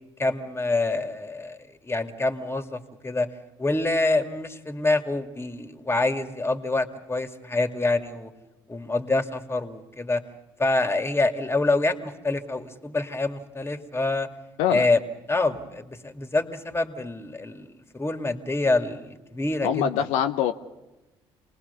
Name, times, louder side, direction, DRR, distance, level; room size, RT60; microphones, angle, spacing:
voice 1, 0.2-3.3 3.6-8.3 8.7-10.2 10.6-14.3 14.7-15.0 15.3-19.9, left 2 dB, 20° left, 7 dB, 2.5 m, -26 dB
voice 2, 19.6-20.5, left 9 dB, 75° left, 7 dB, 0.9 m, -23 dB
27.5 x 19.5 x 7.0 m, 1.0 s
hypercardioid pair, 60°, 12 cm